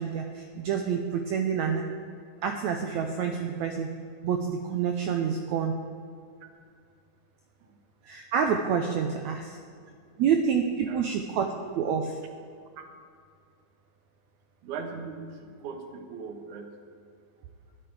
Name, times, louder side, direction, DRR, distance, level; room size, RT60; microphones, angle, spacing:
voice 1, 0.0-1.8 2.4-3.9 4.2-5.8 8.0-9.6 10.2-11.5 11.7-12.2, right 7 dB, 85° right, 4 dB, 1.6 m, -28 dB
voice 2, 14.6-16.7, right 5 dB, 65° right, 5 dB, 2.3 m, -39 dB
13.5 x 11.0 x 4.8 m, 2.3 s
omnidirectional pair, 4.0 m